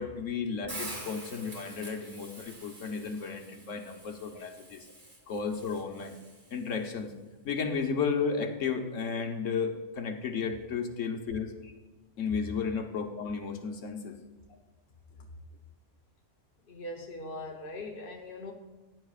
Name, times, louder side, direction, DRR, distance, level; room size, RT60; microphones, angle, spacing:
voice 1, 0.0-4.9 5.3-6.1 6.5-7.1 7.4-11.5 12.2-14.2, left 5 dB, 75° left, 4 dB, 1.4 m, -33 dB
Hiss, 0.7-6.8, right 1 dB, 40° right, 2.3 m, -46 dB
voice 2, 16.7-18.5, left 1 dB, 50° left, 0 dB, 1.1 m, -41 dB
15.5 x 9.9 x 2.4 m, 1.1 s
omnidirectional pair, 1.3 m